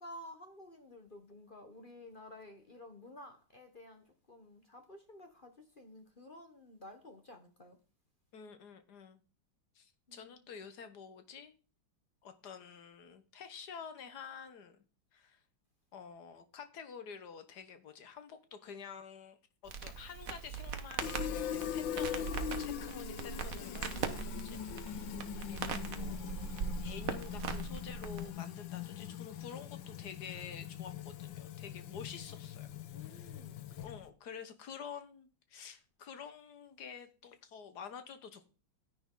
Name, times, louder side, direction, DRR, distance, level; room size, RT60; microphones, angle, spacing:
voice 1, 0.0-7.8 10.1-10.3 32.9-33.7, left 1 dB, 35° left, 1.0 m, -53 dB
voice 2, 8.3-9.2 9.7-11.5 12.2-14.8 15.1-15.4 15.9-19.4 19.6-26.2 26.8-32.7 33.0-33.4 33.8-38.5, left 6 dB, 55° left, 1.6 m, -49 dB
Crackle, 19.7-28.3, right 6 dB, 50° right, 1.3 m, -40 dB
Fill (with liquid), 21.0-34.1, left 10 dB, 70° left, 1.5 m, -42 dB
10.0 x 9.8 x 3.8 m
omnidirectional pair, 2.3 m